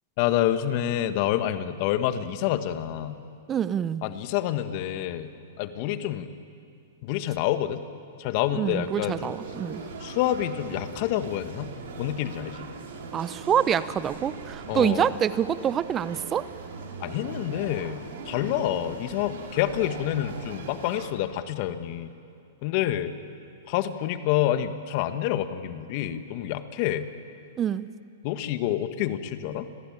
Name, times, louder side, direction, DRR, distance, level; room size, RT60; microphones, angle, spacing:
voice 1, 0.2-3.2 4.0-6.3 7.0-7.8 8.2-9.3 10.0-11.7 12.0-12.7 14.7-15.1 17.0-22.1 22.6-23.1 23.7-27.1 28.2-29.7, left 12 dB, 50° left, 10 dB, 1.7 m, -28 dB
voice 2, 3.5-4.0 8.6-9.8 13.1-16.5 27.6-27.9, right 9 dB, 25° right, 15 dB, 0.8 m, -26 dB
sound 1, 8.7-21.1, right 4 dB, 70° right, 4.6 m, -40 dB
30.0 x 21.5 x 9.0 m, 2.5 s
hypercardioid pair, 120°, 0 cm